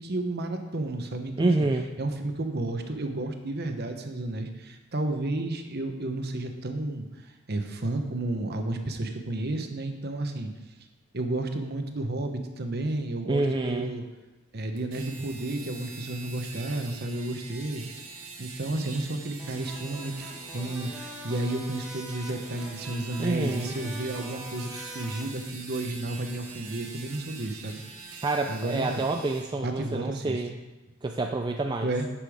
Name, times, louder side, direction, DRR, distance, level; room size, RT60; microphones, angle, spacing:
voice 1, 0.0-1.7 2.0-10.5 11.1-14.0 14.5-27.8 28.1-29.0 29.6-30.4 31.8-32.1, right 2 dB, 45° right, 6 dB, 0.9 m, -32 dB
voice 2, 1.4-1.9 13.3-13.9 23.2-23.7 28.2-30.5 31.0-31.9, right 2 dB, 20° right, 3 dB, 0.3 m, -27 dB
sound 1, 14.8-29.5, right 4 dB, 70° right, 2.4 m, -44 dB
sound 2, 19.4-25.3, equal, 5° right, 1.5 m, -44 dB
10.0 x 6.8 x 4.9 m, 1.1 s
head